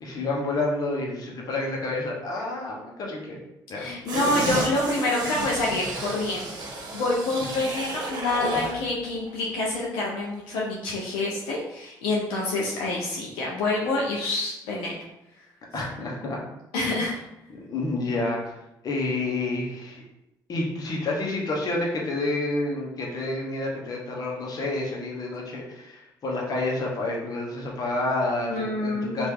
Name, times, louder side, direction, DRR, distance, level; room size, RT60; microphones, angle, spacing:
voice 1, 0.0-3.4 3.7-3.9 8.5-8.7 15.7-16.4 16.8-17.0 17.6-18.5 18.8-20.0 20.5-29.3, left 2 dB, 50° left, -2 dB, 1.0 m, -29 dB
voice 2, 3.7-6.6 6.9-15.0 16.7-17.2 28.4-29.3, left 2 dB, 85° left, -4 dB, 0.6 m, -27 dB
sound 1, 4.1-8.8 9.2-9.3, right 2 dB, 50° right, 1.0 m, -32 dB
2.9 x 2.6 x 3.5 m, 0.88 s
supercardioid pair, 75°, 8 cm